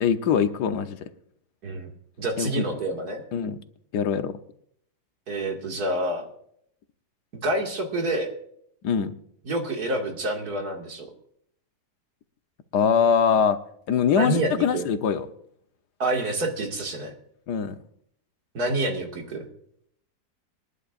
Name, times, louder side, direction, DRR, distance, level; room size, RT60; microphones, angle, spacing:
voice 1, 0.0-1.0 2.4-2.6 3.3-3.6 3.9-4.3 8.8-9.1 12.7-13.6 13.9-15.3 17.5-17.8, left 7 dB, 90° left, 9 dB, 1.5 m, -22 dB
voice 2, 2.2-3.2 5.3-6.3 7.4-8.3 9.4-11.1 14.1-14.9 16.0-17.1 18.5-19.5, right 1 dB, 70° right, 1 dB, 2.7 m, -27 dB
26.5 x 11.0 x 2.5 m, 0.69 s
omnidirectional pair, 1.7 m